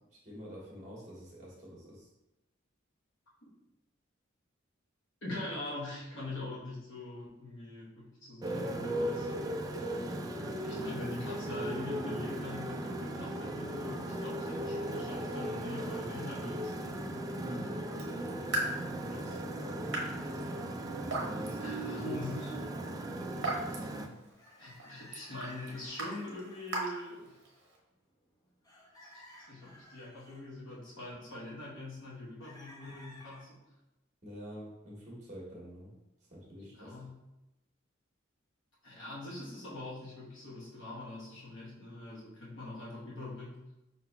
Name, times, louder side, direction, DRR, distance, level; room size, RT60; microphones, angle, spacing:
voice 1, 0.2-2.1 17.4-17.7 19.0-20.0 21.1-22.1 23.1-23.4 34.2-35.9 36.3-37.0, equal, 35° right, -5 dB, 1.5 m, -46 dB
voice 2, 5.2-9.3 10.4-16.7 21.6-22.5 24.6-27.4 29.0-33.6 36.7-37.2 38.8-43.6, left 2 dB, 65° left, -6 dB, 1.1 m, -43 dB
Motorcycle, 8.4-24.1, right 1 dB, 20° right, 0.3 m, -37 dB
Raindrop / Drip, 17.9-27.8, right 1 dB, 60° right, 1.0 m, -41 dB
sound 1, 24.3-26.9 27.3-27.7 28.1-28.3 28.6-30.4 32.4-33.4, equal, 20° left, 0.8 m, -55 dB
5.4 x 4.0 x 2.2 m, 0.96 s
head